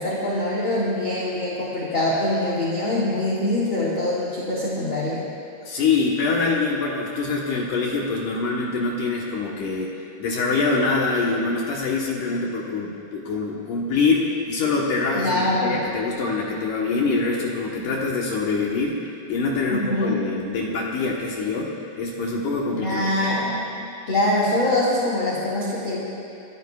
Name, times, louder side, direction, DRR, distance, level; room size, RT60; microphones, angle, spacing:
voice 1, 0.0-5.2 15.1-15.7 19.7-20.2 22.7-23.8 24.1-26.0, left 1 dB, 50° left, -7 dB, 1.6 m, -24 dB
voice 2, 5.7-19.0 19.3-23.1, left 4 dB, 70° left, -3 dB, 2.0 m, -24 dB
29.0 x 14.0 x 2.3 m, 2.6 s
omnidirectional pair, 5.2 m